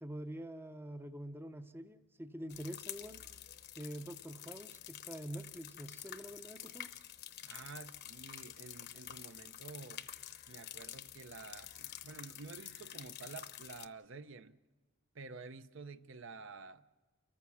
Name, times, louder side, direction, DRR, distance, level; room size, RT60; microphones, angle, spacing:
voice 1, 0.0-3.2 3.8-6.9, right 1 dB, 10° right, 0.6 m, -46 dB
sound 1, 2.5-13.9, left 11 dB, 50° left, 0.8 m, -49 dB
voice 2, 7.4-10.1 10.5-14.6 15.1-16.8, right 4 dB, 60° right, 0.7 m, -50 dB
29.5 x 14.5 x 7.2 m
head